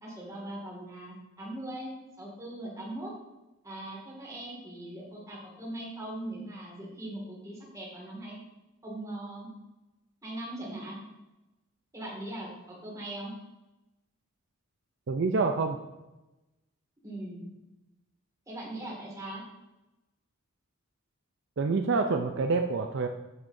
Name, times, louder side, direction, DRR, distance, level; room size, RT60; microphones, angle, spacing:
voice 1, 0.0-3.1 3.6-8.3 8.8-9.5 10.2-11.0 11.9-13.3 17.0-17.5 18.5-19.4, right 1 dB, 15° right, -3 dB, 2.1 m, -40 dB
voice 2, 15.1-15.8 21.6-23.1, right 4 dB, 55° right, 4 dB, 0.5 m, -27 dB
9.0 x 8.0 x 2.6 m, 1.0 s
head